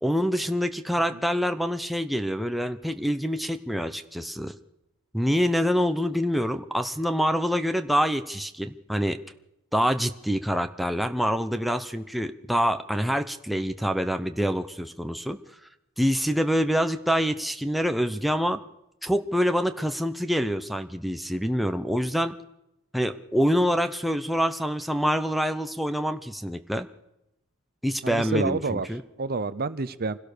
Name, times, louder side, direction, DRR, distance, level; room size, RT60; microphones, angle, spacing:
voice 1, 0.0-4.5 5.1-9.2 9.7-15.4 16.0-18.6 19.0-22.4 22.9-26.9 27.8-29.0, equal, ahead, 7 dB, 0.8 m, -26 dB
voice 2, 28.0-28.9 29.2-30.2, right 3 dB, 45° right, 15 dB, 0.8 m, -28 dB
25.0 x 16.5 x 6.7 m, 0.88 s
head